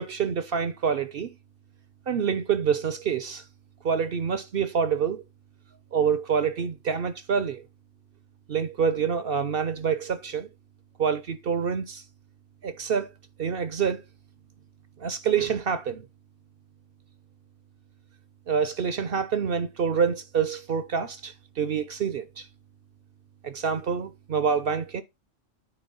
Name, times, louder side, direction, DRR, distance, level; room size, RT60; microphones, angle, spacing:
voice 1, 0.0-1.3 2.1-3.4 3.8-5.2 5.9-7.6 8.5-10.5 11.0-12.0 12.6-13.1 13.4-14.0 15.0-16.1 18.5-22.5 23.4-25.0, right 6 dB, 55° right, 0.8 m, -27 dB
8.9 x 3.4 x 5.4 m
omnidirectional pair, 1.3 m